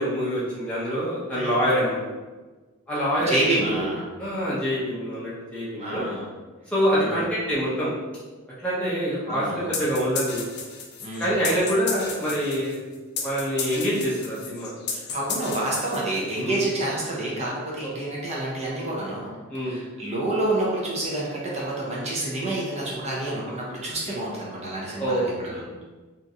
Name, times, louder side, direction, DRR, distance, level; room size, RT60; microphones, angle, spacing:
voice 1, 0.0-2.0 2.9-3.9 4.2-6.0 6.7-7.9 8.6-10.4 11.2-12.7 13.2-14.7 16.4-16.6 19.5-19.8 24.0-24.2 25.0-25.7, equal, 5° left, -10 dB, 0.6 m, -25 dB
voice 2, 3.2-4.0 5.8-6.3 6.9-7.2 9.3-9.7 11.0-11.3 14.9-19.3 19.6-25.6, right 1 dB, 30° right, -5 dB, 0.7 m, -28 dB
sound 1, 9.7-16.4, left 5 dB, 50° left, 0.4 m, -33 dB
2.9 x 2.4 x 2.6 m, 1.3 s
head